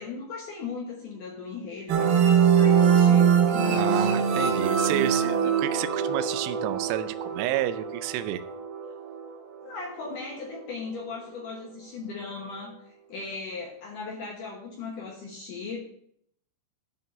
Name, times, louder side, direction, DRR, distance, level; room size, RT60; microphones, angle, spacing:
voice 1, 0.0-4.1 9.6-15.8, left 4 dB, 75° left, -1 dB, 1.9 m, -38 dB
sound 1, 1.9-9.3, right 7 dB, 70° right, 2.4 m, -23 dB
voice 2, 3.7-8.4, right 13 dB, 90° right, 11 dB, 2.4 m, -30 dB
10.5 x 3.9 x 6.7 m, 0.66 s
omnidirectional pair, 5.5 m